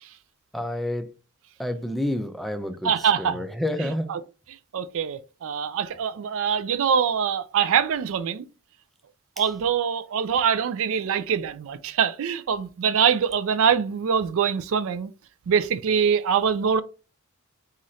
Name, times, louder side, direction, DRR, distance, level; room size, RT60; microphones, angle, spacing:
voice 1, 0.5-1.1 1.6-4.1 9.4-9.5, left 1 dB, ahead, 0.4 m, -29 dB
voice 2, 2.8-3.4 4.1-4.2 4.7-8.4 9.4-15.1 15.5-16.8, right 7 dB, 65° right, 0.4 m, -24 dB
4.1 x 2.5 x 3.0 m
head